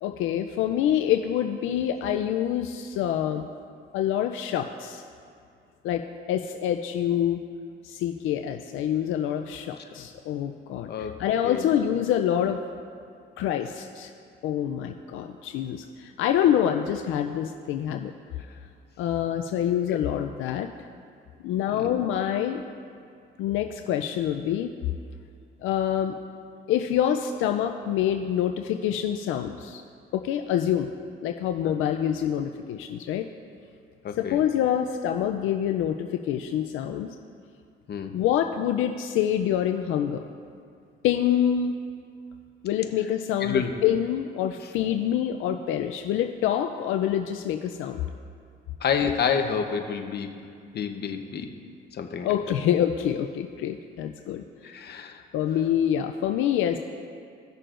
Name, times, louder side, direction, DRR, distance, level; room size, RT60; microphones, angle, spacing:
voice 1, 0.0-3.5 3.9-5.0 5.8-7.4 7.8-12.6 13.4-14.1 14.4-18.1 19.0-20.7 21.4-22.6 23.4-24.7 25.6-26.2 26.7-29.8 30.1-30.9 31.2-33.3 34.2-37.1 38.1-40.3 41.0-41.8 42.6-48.0 52.2-54.4 55.3-56.8, left 10 dB, 85° left, 6 dB, 0.4 m, -26 dB
voice 2, 34.0-34.4 37.9-38.2 43.4-43.7 48.8-50.4 50.7-51.5 51.9-52.3 54.6-55.2, left 6 dB, 55° left, 5 dB, 0.9 m, -29 dB
17.0 x 6.6 x 2.5 m, 2.3 s
cardioid pair, 90°, 20 cm